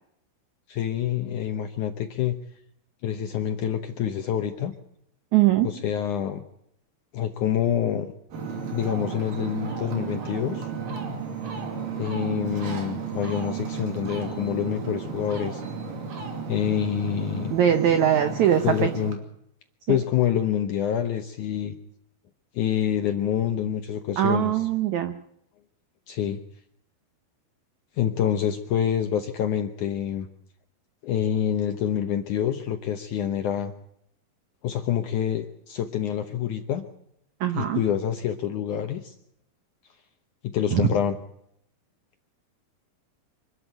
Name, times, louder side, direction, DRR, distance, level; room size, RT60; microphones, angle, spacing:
voice 1, 0.7-2.3 3.0-4.7 5.6-6.4 7.1-8.1 8.7-10.7 12.0-15.6 16.5-17.5 18.6-19.2 19.9-21.7 22.5-24.7 26.1-26.4 28.0-30.3 31.0-33.7 34.6-36.8 37.5-39.1 40.4-41.2, left 9 dB, 75° left, 7 dB, 1.8 m, -27 dB
voice 2, 5.3-5.7 17.5-18.9 19.9-20.0 24.2-25.1 37.4-37.8 40.7-40.9, right 10 dB, 85° right, 9 dB, 1.6 m, -21 dB
Ocean, 8.3-19.1, right 5 dB, 55° right, 4.1 m, -33 dB
25.5 x 12.5 x 9.1 m, 0.76 s
omnidirectional pair, 4.8 m